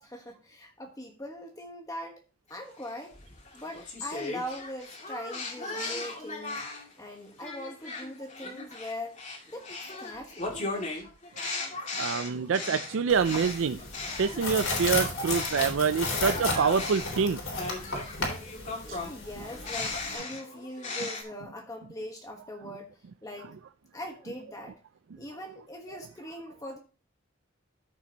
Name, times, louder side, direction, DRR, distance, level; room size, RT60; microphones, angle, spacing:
voice 1, 0.0-2.2 2.5-3.2 3.5-6.6 7.0-9.2 9.5-9.7 10.0-10.9 18.8-23.5 23.9-24.8 25.2-26.8, left 1 dB, 15° left, 2 dB, 1.3 m, -41 dB
sound 1, 2.8-6.9 7.4-15.7 16.0-21.2, left 3 dB, 35° left, 2.3 m, -37 dB
voice 2, 11.9-13.8 14.2-17.4 18.9-19.0, right 6 dB, 75° right, 10 dB, 0.4 m, -26 dB
sound 2, 13.1-20.1, left 3 dB, 80° left, 3.4 m, -34 dB
14.0 x 6.0 x 2.9 m, 0.33 s
head